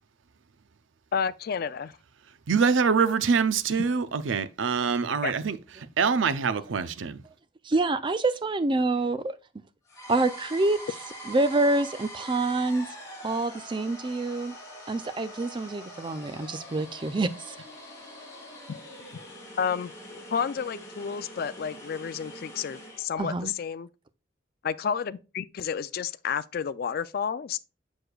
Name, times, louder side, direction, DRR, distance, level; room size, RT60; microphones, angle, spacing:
voice 1, 1.1-1.9 5.2-5.3 18.7-18.8 19.6-19.9 20.3-23.9 24.6-27.6, left 7 dB, 50° left, 0.3 m, -31 dB
voice 2, 2.5-5.6 6.0-7.2, right 5 dB, 80° right, 0.5 m, -24 dB
voice 3, 7.6-9.3 10.1-10.8 11.3-12.9 13.2-14.5 14.9-17.6 23.2-23.5, right 2 dB, 25° right, 0.4 m, -26 dB
sound 1, 9.9-23.1, equal, 15° left, 2.2 m, -44 dB
6.7 x 6.2 x 2.3 m
head